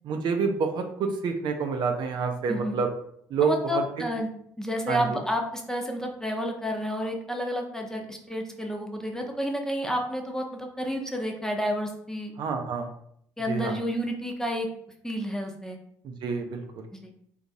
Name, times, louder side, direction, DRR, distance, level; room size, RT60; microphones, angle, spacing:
voice 1, 0.0-2.9 3.3-3.8 4.9-5.2 12.4-12.9 13.5-13.8 16.0-16.8, right 5 dB, 60° right, 5 dB, 0.6 m, -28 dB
voice 2, 3.4-4.3 4.6-12.3 13.4-14.7 15.0-15.8 16.9-17.1, equal, 5° left, 2 dB, 0.9 m, -30 dB
3.9 x 2.8 x 3.6 m, 0.68 s
hypercardioid pair, 50°, 9 cm